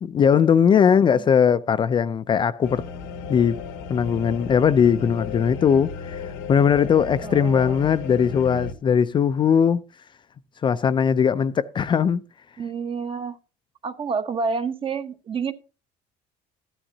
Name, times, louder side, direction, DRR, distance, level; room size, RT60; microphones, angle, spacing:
voice 1, 0.0-2.8 3.3-3.6 3.9-6.2 6.5-9.8 10.6-12.2, left 7 dB, 30° left, 0.4 m, -19 dB
voice 2, 0.8-1.3 7.2-7.9 12.6-13.4 13.8-15.5, right 5 dB, 35° right, 1.0 m, -29 dB
sound 1, 2.6-8.7, left 5 dB, 90° left, 1.2 m, -35 dB
14.0 x 10.0 x 2.8 m
cardioid pair, 110°, 16 cm